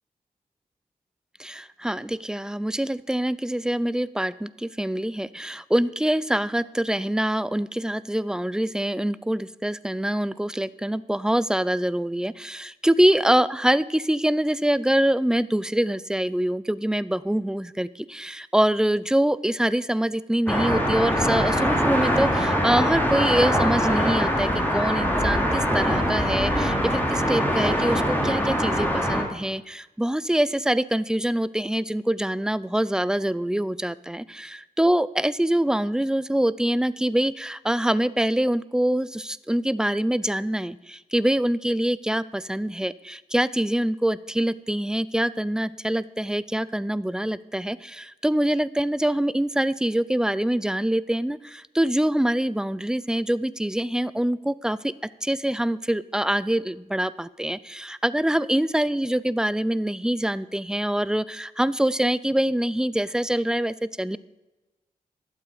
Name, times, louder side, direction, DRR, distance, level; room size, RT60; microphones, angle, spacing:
voice 1, 1.4-54.9 55.2-64.2, right 1 dB, 5° right, 18 dB, 0.5 m, -25 dB
sound 1, 20.5-29.2, equal, 10° left, 2.8 m, -23 dB
11.5 x 7.7 x 5.0 m, 1.1 s
cardioid pair, 50°, 16 cm